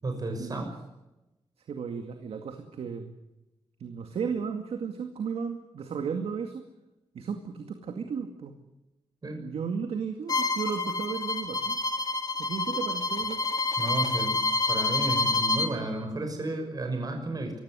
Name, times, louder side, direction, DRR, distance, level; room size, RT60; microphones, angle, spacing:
voice 1, 0.0-0.7 9.2-9.4 13.8-14.4 14.7-17.5, right 2 dB, 40° right, 4 dB, 6.2 m, -32 dB
voice 2, 1.7-3.1 3.8-6.7 7.1-8.5 9.4-11.8 12.4-13.4, right 6 dB, 85° right, 6 dB, 2.2 m, -34 dB
Bowed string instrument, 10.3-15.7, left 3 dB, 40° left, 3.0 m, -28 dB
24.5 x 16.0 x 9.8 m, 0.97 s
wide cardioid pair, 95°, 10 cm